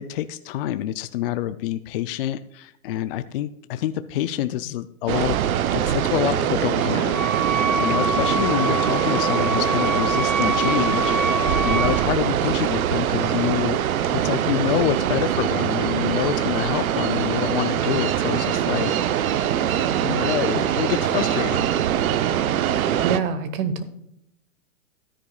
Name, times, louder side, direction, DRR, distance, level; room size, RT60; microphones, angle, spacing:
voice 1, 0.0-5.4 5.7-13.8 14.1-19.4 20.0-21.7, left 13 dB, 40° left, 11 dB, 0.4 m, -27 dB
sound 1, 5.1-23.2, right 10 dB, 70° right, 0.8 m, -23 dB
Wind instrument woodwind instrument, 7.1-12.0, equal, 5° left, 3.1 m, -26 dB
voice 2, 22.8-23.8, right 6 dB, 40° right, 12 dB, 1.2 m, -26 dB
15.0 x 10.0 x 2.3 m, 0.79 s
hypercardioid pair, 135°, 44 cm